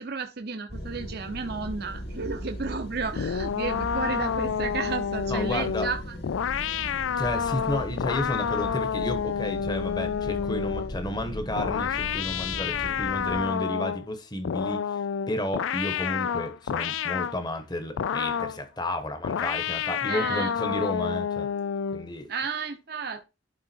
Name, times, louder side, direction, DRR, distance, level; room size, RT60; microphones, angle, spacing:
voice 1, 0.0-6.2 20.1-20.5 22.3-23.2, right 4 dB, 55° right, 0.8 m, -32 dB
sound 1, 0.7-13.5, equal, 55° left, 2.6 m, -38 dB
sound 2, 3.2-11.0 11.6-14.1 14.4-17.4 18.0-18.6 19.2-22.1, left 8 dB, 90° left, 0.4 m, -29 dB
voice 2, 5.3-5.9 7.2-15.0 15.3-21.5 21.9-22.3, left 1 dB, 20° left, 1.2 m, -32 dB
11.5 x 3.8 x 4.5 m
head